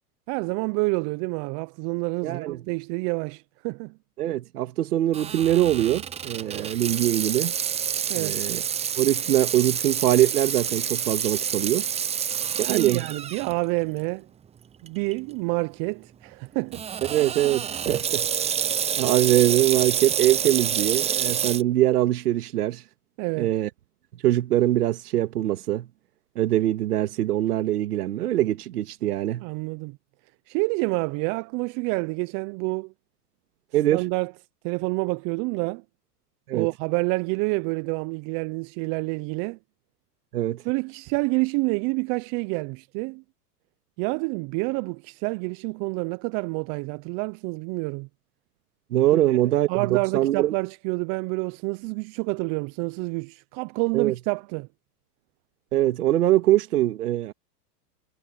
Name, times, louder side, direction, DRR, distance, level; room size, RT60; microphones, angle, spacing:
voice 1, 0.3-4.0 8.1-8.4 12.6-14.3 14.8-16.8 23.2-23.5 29.4-30.0 30.5-32.9 33.9-34.3 34.6-35.8 36.5-39.6 40.6-43.2 44.0-48.1 49.1-49.4 49.7-54.7, right 29 dB, 40° right, 1.0 m, -28 dB
voice 2, 2.2-2.6 4.2-7.6 8.1-8.6 9.0-11.9 12.6-13.1 17.1-18.3 19.0-22.8 23.4-23.7 24.2-25.9 26.4-29.4 33.7-34.0 36.5-36.7 40.3-40.6 48.9-50.5 53.9-54.1 55.7-57.3, right 14 dB, 70° right, 2.5 m, -23 dB
Water tap faucet / Sink (filling or washing), 5.1-13.5 14.0-14.1 14.9-15.1 16.7-21.6, right 8 dB, 15° right, 0.7 m, -28 dB
hypercardioid pair, 110°, 48 cm